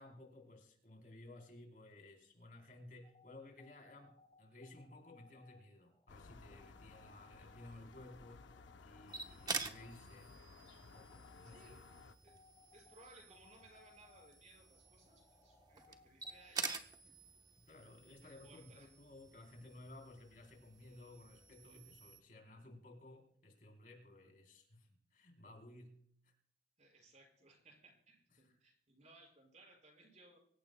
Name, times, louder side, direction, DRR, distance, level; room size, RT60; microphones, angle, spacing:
voice 1, 0.0-8.5 8.8-10.4 10.7-11.8 17.6-26.3 28.3-28.5, left 2 dB, 50° left, 2 dB, 3.5 m, -57 dB
sound 1, 3.0-16.5, left 4 dB, 15° left, 5.7 m, -67 dB
sound 2, 6.1-12.2, left 4 dB, 85° left, 0.7 m, -58 dB
sound 3, 9.1-22.2, right 4 dB, 20° right, 1.0 m, -49 dB
voice 2, 11.4-11.8 12.2-12.3 12.7-17.1 18.2-18.9 26.8-30.4, right 2 dB, 40° right, 0 dB, 5.8 m, -63 dB
25.0 x 15.0 x 2.2 m, 0.65 s
head